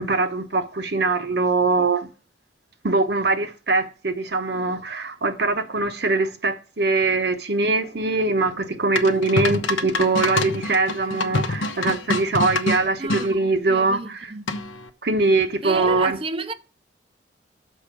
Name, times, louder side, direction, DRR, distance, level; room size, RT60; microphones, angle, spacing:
voice 1, 0.0-2.1 2.8-14.3 15.0-16.2, right 3 dB, 55° right, 0.9 m, -22 dB
sound 1, 9.0-13.3 14.5-14.9, left 2 dB, 85° left, 0.8 m, -26 dB
voice 2, 13.0-14.4 15.6-16.5, right 3 dB, 30° right, 0.5 m, -31 dB
6.4 x 4.9 x 5.9 m
head